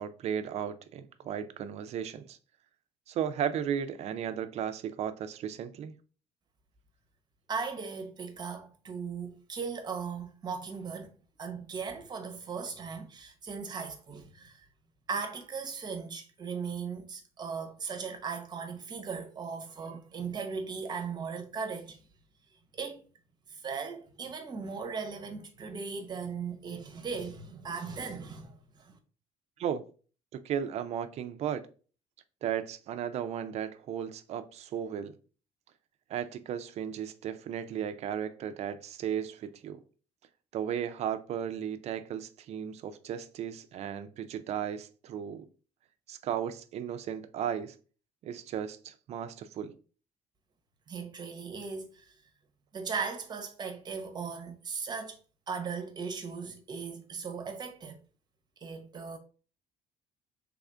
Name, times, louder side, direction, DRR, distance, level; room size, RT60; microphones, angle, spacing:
voice 1, 0.0-2.4 3.1-6.0 29.6-29.8 30.3-31.6 32.4-35.2 36.1-39.8 40.5-45.5 46.1-47.8 48.2-49.7, right 9 dB, 50° right, 0.4 m, -35 dB
voice 2, 7.5-11.1 11.4-14.7 15.1-22.0 22.7-23.0 23.5-29.0 50.9-52.1 52.7-55.2 55.5-58.0 58.6-59.2, right 5 dB, 30° right, 0.8 m, -38 dB
3.5 x 2.4 x 3.3 m
cardioid pair, 115°, 14 cm